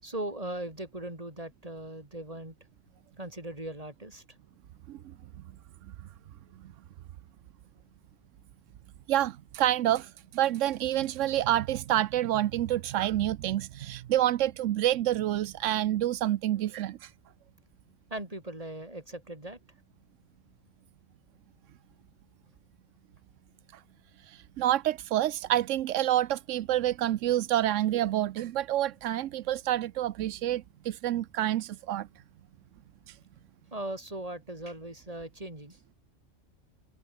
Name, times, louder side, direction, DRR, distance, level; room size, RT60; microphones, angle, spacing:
voice 1, 0.0-2.5 3.2-4.2 18.1-19.6 33.7-35.8, right 1 dB, 30° right, 4.6 m, -39 dB
voice 2, 9.1-17.1 24.3-32.1, right 13 dB, 85° right, 1.0 m, -28 dB
omnidirectional pair, 1.3 m